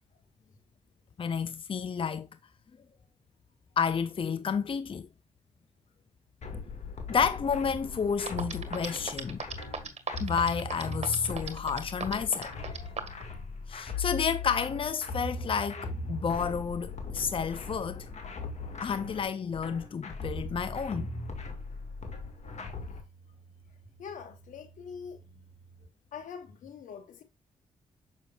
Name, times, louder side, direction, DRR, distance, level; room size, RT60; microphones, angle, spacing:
voice 1, 1.2-2.3 3.8-5.1 7.1-9.4 10.2-13.0 13.7-18.1 18.8-21.1, left 6 dB, 45° left, 0.6 m, -30 dB
sound 1, 6.4-23.0, left 3 dB, 60° left, 2.0 m, -39 dB
sound 2, 7.9-8.0 8.3-13.2, right 6 dB, 55° right, 1.5 m, -36 dB
sound 3, 9.8-25.9, right 3 dB, 10° right, 2.7 m, -59 dB
voice 2, 24.0-25.4 26.1-27.2, left 6 dB, 80° left, 1.4 m, -44 dB
6.9 x 6.2 x 2.4 m
supercardioid pair, 50°, 13 cm